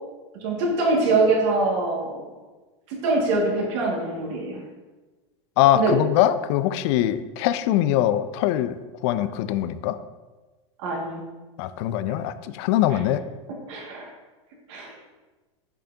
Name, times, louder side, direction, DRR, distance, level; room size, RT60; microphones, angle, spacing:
voice 1, 0.4-2.2 2.9-4.6 5.7-6.0 10.8-11.2 12.9-13.0 13.7-14.1 14.7-14.9, right 3 dB, 65° right, -1 dB, 2.0 m, -23 dB
voice 2, 5.6-10.0 11.6-13.2, left 12 dB, 60° left, 13 dB, 0.4 m, -22 dB
7.1 x 5.5 x 2.8 m, 1.2 s
hypercardioid pair, 110°, 16 cm